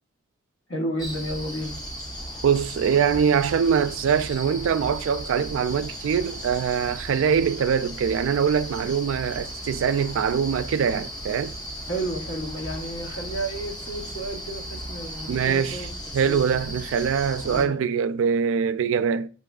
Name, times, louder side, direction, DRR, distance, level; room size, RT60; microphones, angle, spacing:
voice 1, 0.7-1.8 11.9-15.9 16.2-16.8 17.5-17.8, right 1 dB, 70° left, 1.1 m, -32 dB
sound 1, 1.0-17.7, equal, 20° left, 0.6 m, -36 dB
voice 2, 2.4-11.5 15.3-15.9 16.1-19.3, right 7 dB, 75° right, 0.3 m, -23 dB
7.7 x 2.9 x 2.4 m
head